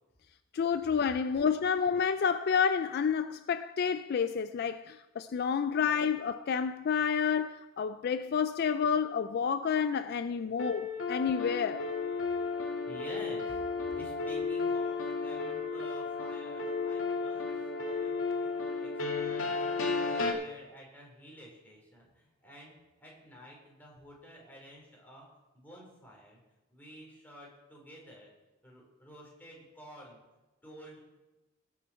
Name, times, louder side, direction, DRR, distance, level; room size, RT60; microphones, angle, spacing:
voice 1, 0.5-11.8, left 6 dB, 50° left, 0.3 m, -29 dB
sound 1, 10.6-20.3, left 4 dB, 80° left, 1.8 m, -33 dB
voice 2, 12.7-17.5 17.8-25.3 25.5-26.4 26.7-28.3 28.6-30.2 30.6-31.0, equal, 10° left, 3.7 m, -51 dB
19.0 x 7.3 x 4.3 m
head